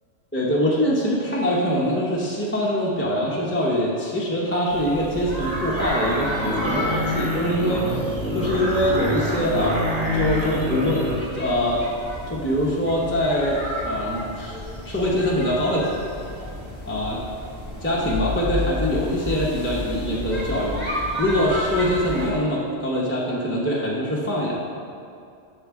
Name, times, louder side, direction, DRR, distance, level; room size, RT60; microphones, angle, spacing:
voice 1, 0.3-8.0 8.3-9.8 10.1-11.0 11.3-11.8 12.3-14.6 14.8-15.9 16.9-17.2 17.8-24.7, equal, 10° left, -6 dB, 0.6 m, -23 dB
sound 1, 4.7-22.3, left 1 dB, 20° right, 1.7 m, -32 dB
sound 2, 5.4-11.2, equal, 90° right, 1.9 m, -26 dB
7.3 x 6.6 x 3.6 m, 2.5 s
omnidirectional pair, 1.3 m